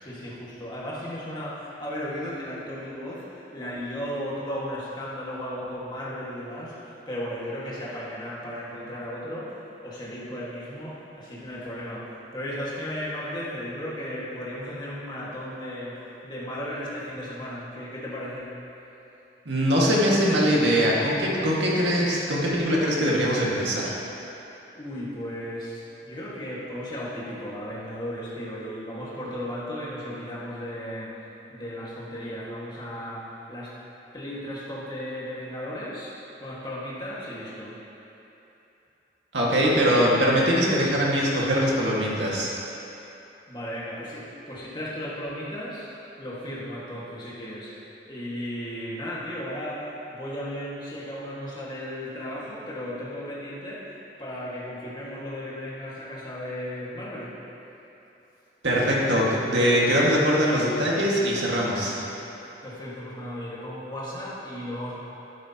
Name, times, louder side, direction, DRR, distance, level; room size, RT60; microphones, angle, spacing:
voice 1, 0.0-18.6 24.7-33.8 34.1-37.8 43.5-47.8 48.1-57.4 62.6-65.0, equal, 25° left, -7 dB, 1.8 m, -35 dB
voice 2, 19.5-23.9 39.3-42.5 58.6-62.0, equal, 90° right, -4 dB, 1.9 m, -22 dB
11.0 x 9.9 x 2.9 m, 3.0 s
head